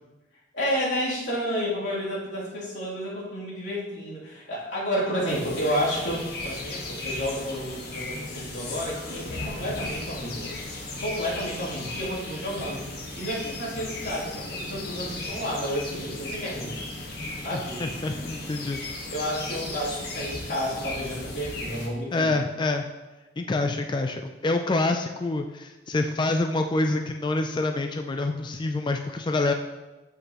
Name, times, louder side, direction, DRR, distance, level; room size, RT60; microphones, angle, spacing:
voice 1, 0.5-10.5 11.0-12.8 13.2-16.8 17.4-17.8 19.1-22.3, equal, 90° left, -7 dB, 2.9 m, -31 dB
sound 1, 5.3-21.9, left 2 dB, 60° left, 1.4 m, -36 dB
voice 2, 17.5-18.8 22.1-22.8 23.4-29.5, left 2 dB, 25° left, 5 dB, 0.3 m, -26 dB
8.0 x 8.0 x 2.9 m, 1.1 s
head